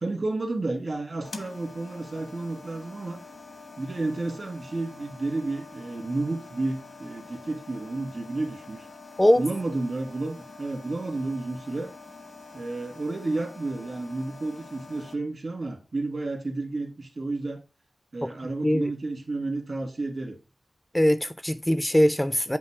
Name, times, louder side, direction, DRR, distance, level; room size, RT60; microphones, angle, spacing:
voice 1, 0.0-3.2 3.8-8.9 9.4-11.9 12.5-17.6 18.1-20.4, right 2 dB, 55° right, 1.7 m, -31 dB
sound 1, 1.2-15.1, left 3 dB, 85° left, 1.0 m, -46 dB
voice 2, 20.9-22.6, equal, 10° left, 0.4 m, -21 dB
8.2 x 2.7 x 4.8 m
wide cardioid pair, 90°, 0 cm